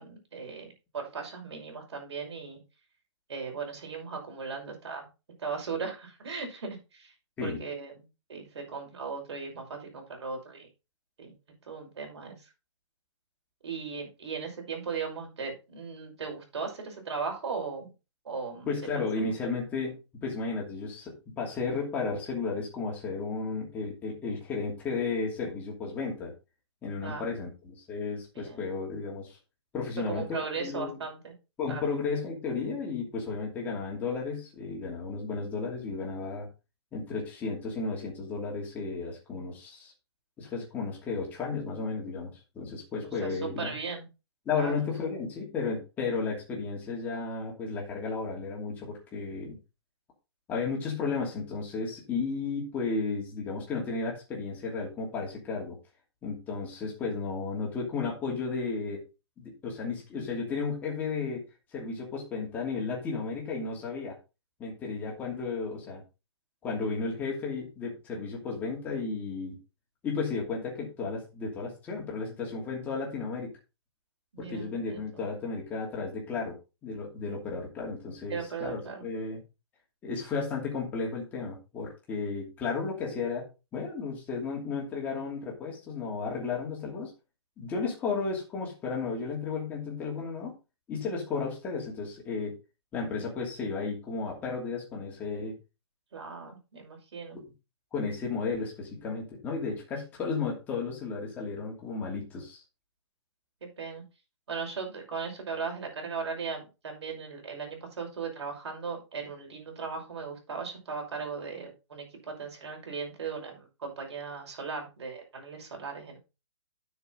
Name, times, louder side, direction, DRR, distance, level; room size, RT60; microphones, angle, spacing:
voice 1, 0.0-2.6 3.3-5.1 5.4-7.1 7.4-8.0 8.3-10.7 11.2-11.3 11.7-12.4 13.6-17.9 18.2-18.7 27.0-27.3 28.4-28.6 30.1-31.3 31.7-31.8 43.2-44.0 44.5-44.9 74.3-75.2 78.3-79.0 96.1-97.4 103.6-104.0 104.5-116.2, right 5 dB, 65° right, 2 dB, 5.6 m, -37 dB
voice 2, 18.7-26.3 26.8-29.4 29.7-31.0 31.6-36.5 36.9-39.9 40.4-43.8 44.4-49.6 50.5-55.8 56.2-59.0 59.4-61.4 61.7-64.1 64.6-66.0 66.6-69.6 70.0-73.5 74.4-76.6 76.8-79.4 80.0-83.4 83.7-87.1 87.6-90.6 90.9-92.6 92.9-95.5 97.3-97.4 97.9-102.6, left 4 dB, 10° left, -2 dB, 2.7 m, -33 dB
10.0 x 6.8 x 3.9 m, 0.29 s
hypercardioid pair, 170°, 15 cm